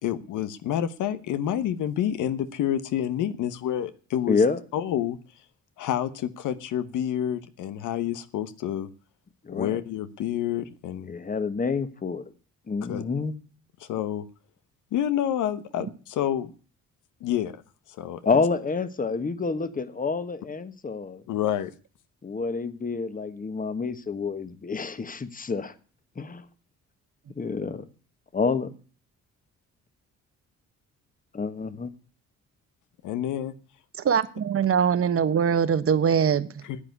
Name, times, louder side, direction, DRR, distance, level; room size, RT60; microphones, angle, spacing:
voice 1, 0.0-4.4 4.7-5.2 5.8-8.9 9.5-11.1 12.9-13.0 13.8-14.2 14.9-16.5 17.2-17.5 18.0-18.4 21.3-21.7 33.0-33.5 36.6-36.8, left 10 dB, 85° left, 1.1 m, -28 dB
voice 2, 4.3-4.6 9.4-9.8 11.1-12.2 12.7-13.3 18.2-21.2 22.2-25.7 26.2-26.4 27.3-27.8 28.3-28.7 31.3-31.9, left 4 dB, 30° left, 1.4 m, -28 dB
voice 3, 34.0-36.5, right 7 dB, 50° right, 1.3 m, -22 dB
10.0 x 8.7 x 9.4 m
cardioid pair, 90°, 30 cm